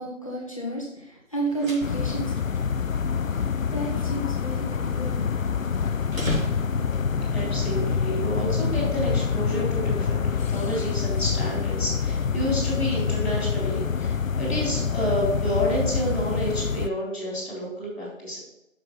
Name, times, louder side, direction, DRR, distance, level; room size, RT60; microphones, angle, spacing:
voice 1, 0.0-2.3 3.3-5.2, right 2 dB, 25° left, -3 dB, 1.1 m, -31 dB
sound 1, 1.3-7.1, equal, 80° right, 2.9 m, -38 dB
sound 2, 1.8-16.9, left 6 dB, 80° left, 0.6 m, -26 dB
voice 2, 7.3-18.4, equal, ahead, -20 dB, 1.9 m, -29 dB
6.5 x 6.1 x 4.1 m, 0.87 s
figure-of-eight pair, 165°, 39 cm